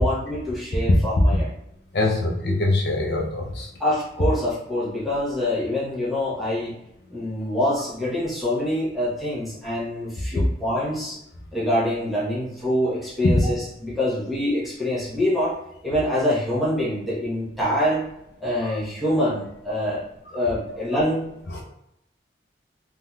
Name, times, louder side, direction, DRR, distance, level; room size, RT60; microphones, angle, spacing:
voice 1, 0.0-1.5 3.8-6.8 7.1-11.2 11.5-15.5 15.8-18.0 18.4-20.0 20.3-21.2, left 1 dB, ahead, -9 dB, 1.0 m, -25 dB
voice 2, 1.9-3.7 18.6-18.7 21.5-21.6, left 2 dB, 60° left, -1 dB, 0.5 m, -24 dB
3.5 x 2.8 x 2.3 m, 0.80 s
head